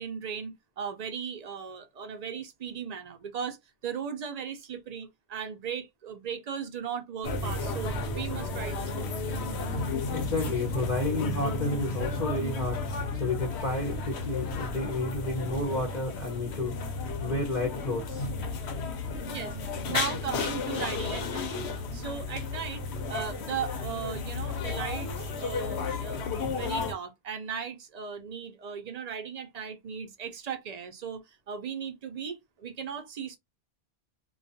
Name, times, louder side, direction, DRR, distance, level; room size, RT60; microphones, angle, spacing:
voice 1, 0.0-9.1 19.3-21.6 21.9-26.2 26.6-33.4, right 7 dB, 50° right, 0.5 m, -37 dB
sound 1, 7.2-26.9, left 3 dB, 90° left, 0.9 m, -33 dB
voice 2, 10.1-16.9 17.2-18.3, left 2 dB, 50° left, 0.7 m, -31 dB
2.3 x 2.3 x 2.6 m
omnidirectional pair, 1.1 m